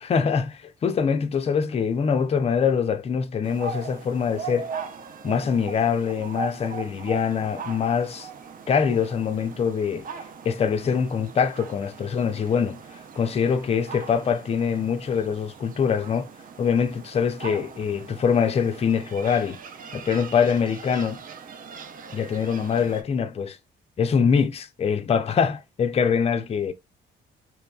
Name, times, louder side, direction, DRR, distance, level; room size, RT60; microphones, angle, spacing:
voice 1, 0.0-4.7 5.2-8.3 8.7-10.1 10.5-12.8 13.2-16.3 16.6-19.6 19.9-21.2 22.1-23.6 24.0-26.7, left 6 dB, 30° left, 0.4 m, -24 dB
sound 1, 3.4-23.0, right 5 dB, 45° right, 0.5 m, -40 dB
3.0 x 2.2 x 2.2 m
cardioid pair, 90°, 20 cm